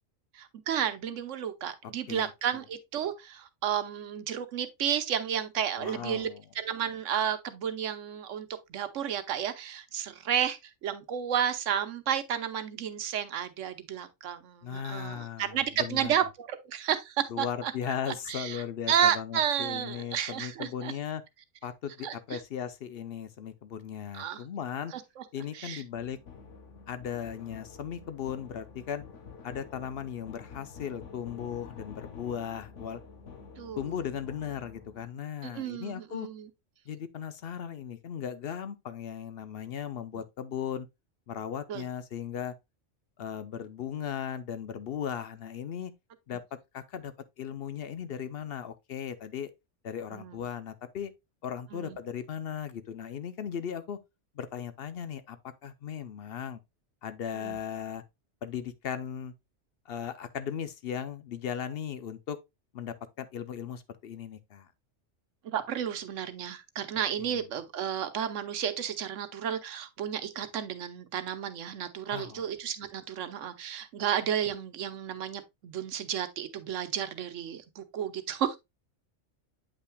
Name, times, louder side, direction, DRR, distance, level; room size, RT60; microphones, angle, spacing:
voice 1, 0.3-6.3 6.5-17.7 18.0-20.9 22.0-22.4 24.1-24.4 24.9-25.2 25.5-25.8 33.6-33.9 35.4-36.5 40.1-40.2 41.7-41.8 50.1-50.4 51.7-52.0 57.4-57.6 65.4-78.6, right 9 dB, 90° right, 1.1 m, -32 dB
voice 2, 5.8-6.4 14.6-16.1 17.3-21.2 21.6-24.9 25.3-26.2 26.9-29.0 29.4-33.0 33.8-36.3 36.9-40.9 41.3-42.5 43.2-45.9 46.3-46.4 46.7-49.5 49.8-51.1 51.4-54.0 54.4-55.4 55.6-56.6 57.0-58.0 58.4-59.3 59.9-62.4 62.7-64.7 67.3-67.4 72.1-72.4, left 8 dB, 60° left, 0.7 m, -37 dB
sound 1, 25.9-35.1, left 5 dB, 80° left, 1.3 m, -48 dB
8.4 x 5.6 x 2.2 m
omnidirectional pair, 1.2 m